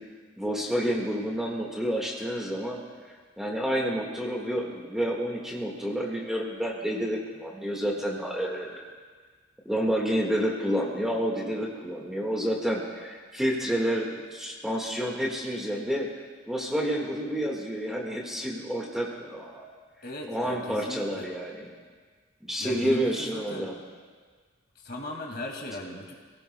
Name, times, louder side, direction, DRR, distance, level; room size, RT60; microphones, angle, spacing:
voice 1, 0.4-2.8 3.4-8.8 9.7-16.1 16.5-19.7 20.3-21.6 22.4-23.8, equal, ahead, -2 dB, 1.7 m, -29 dB
voice 2, 20.0-21.3 22.6-23.7 24.8-26.1, left 1 dB, 50° left, 0 dB, 2.3 m, -38 dB
27.5 x 17.5 x 2.3 m, 1.5 s
head